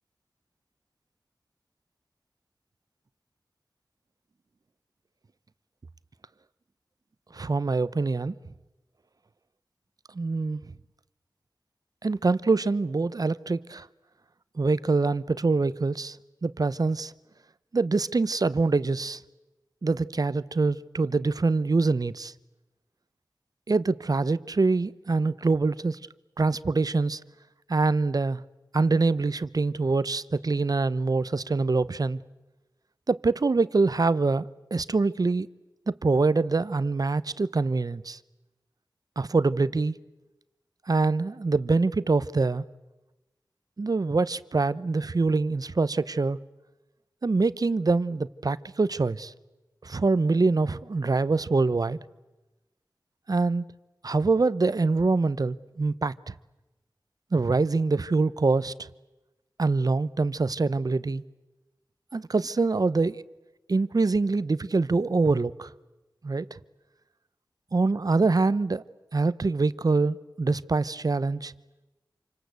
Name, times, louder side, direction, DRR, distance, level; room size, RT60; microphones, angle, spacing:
voice 1, 7.3-8.4 10.1-10.6 12.0-13.9 14.5-16.2 16.4-17.1 17.7-19.2 19.8-22.3 23.7-26.0 26.4-27.2 27.7-28.4 28.7-32.2 33.1-35.5 35.9-38.2 39.2-39.9 40.9-42.6 43.8-46.4 47.2-49.3 49.8-52.0 53.3-53.6 54.0-56.3 57.3-58.7 59.6-61.2 62.1-63.2 63.7-65.7 66.2-66.5 67.7-68.8 69.1-71.5, right 3 dB, 60° right, 0.8 m, -24 dB
28.0 x 25.0 x 8.2 m
wide cardioid pair, 60°, 7 cm